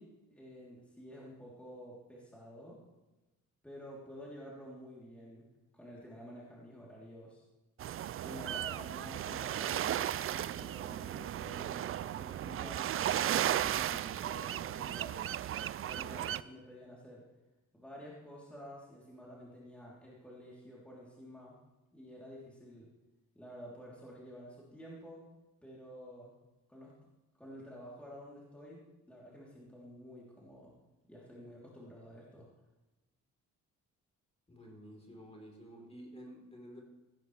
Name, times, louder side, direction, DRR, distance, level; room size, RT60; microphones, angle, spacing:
voice 1, 0.0-2.8 3.6-5.5 5.7-7.4 8.2-9.9 10.3-12.9 13.2-15.2 15.7-17.2 17.7-21.6 21.9-22.9 23.3-25.2 25.6-26.3 26.7-26.9 27.4-30.7 31.1-32.5, equal, 5° left, -6 dB, 3.3 m, -50 dB
sound 1, 7.8-16.4, right 11 dB, 45° right, 0.4 m, -35 dB
voice 2, 34.5-36.8, equal, 20° left, 0 dB, 3.8 m, -51 dB
16.0 x 12.5 x 3.3 m, 1.1 s
cardioid pair, 90°, 30 cm